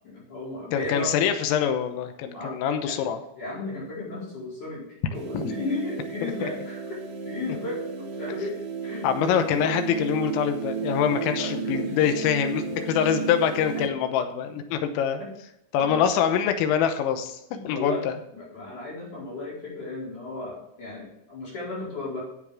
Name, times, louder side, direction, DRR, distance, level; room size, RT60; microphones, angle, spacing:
voice 1, 0.0-1.2 2.3-2.6 2.8-3.0 3.4-7.0 7.3-9.4 11.4-11.9 13.1-13.2 13.7-13.8 15.2-15.3 15.8-16.1 17.5-18.0 18.3-22.2, left 2 dB, 40° left, -6 dB, 5.7 m, -35 dB
voice 2, 0.7-3.2 5.3-5.5 6.4-6.5 9.0-15.2 15.7-17.4 17.7-18.2, left 8 dB, 85° left, 8 dB, 3.6 m, -24 dB
sound 1, 5.1-13.9, right 6 dB, 65° right, 2.2 m, -33 dB
13.5 x 7.7 x 3.6 m, 0.84 s
omnidirectional pair, 5.9 m